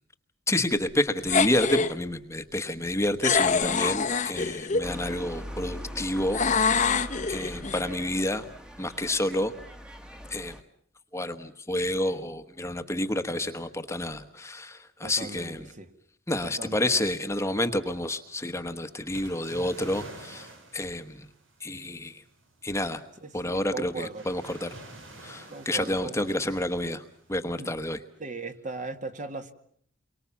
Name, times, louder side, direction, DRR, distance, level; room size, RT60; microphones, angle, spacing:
voice 1, 0.5-8.4 8.8-9.5 10.3-10.5 11.1-15.6 16.3-21.3 21.6-22.2 22.6-23.0 23.3-24.7 25.2-27.0 27.3-28.0, left 1 dB, 15° left, 1.2 m, -29 dB
sound 1, 1.3-1.9 3.2-4.9 6.3-7.8, left 5 dB, 40° left, 1.0 m, -25 dB
sound 2, 4.8-10.6, equal, 5° right, 1.5 m, -41 dB
voice 2, 15.0-15.9 16.4-17.0 23.2-24.3 25.5-26.4 27.6-27.7 28.2-29.5, right 3 dB, 40° right, 1.9 m, -38 dB
sound 3, 17.6-28.0, right 2 dB, 85° right, 5.1 m, -50 dB
29.5 x 23.5 x 7.2 m
head